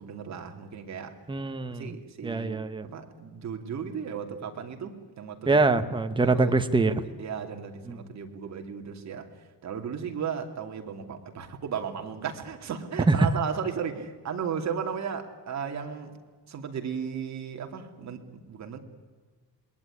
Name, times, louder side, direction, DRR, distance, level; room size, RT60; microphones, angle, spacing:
voice 1, 0.0-1.2 1.6-2.6 2.9-5.6 6.2-6.6 7.0-16.2 16.5-18.8, right 7 dB, 45° right, 4 dB, 2.7 m, -35 dB
voice 2, 1.3-1.9 2.2-2.9 5.5-6.9 7.9-8.0 13.1-13.3, right 3 dB, 10° right, 9 dB, 1.1 m, -24 dB
27.0 x 21.0 x 9.9 m, 1.5 s
cardioid pair, 175°, 39 cm